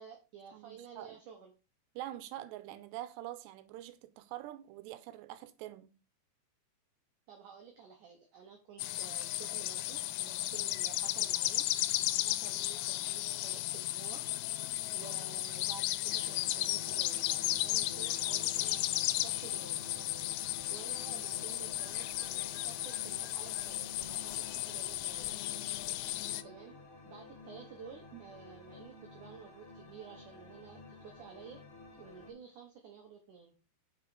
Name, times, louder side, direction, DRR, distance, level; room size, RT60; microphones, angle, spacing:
voice 1, 0.0-1.5 7.3-11.7 12.2-14.2 14.9-17.3 17.6-19.8 20.7-25.3 26.4-26.8 27.0-31.6 32.0-33.6, right 6 dB, 70° right, 2.0 m, -52 dB
voice 2, 0.5-1.2 2.0-5.9 28.1-28.2, right 14 dB, 90° right, 2.8 m, -45 dB
sound 1, 8.8-26.4, left 16 dB, 90° left, 2.8 m, -34 dB
sound 2, 16.1-32.3, left 2 dB, 40° left, 2.2 m, -52 dB
6.3 x 4.9 x 4.6 m
omnidirectional pair, 4.9 m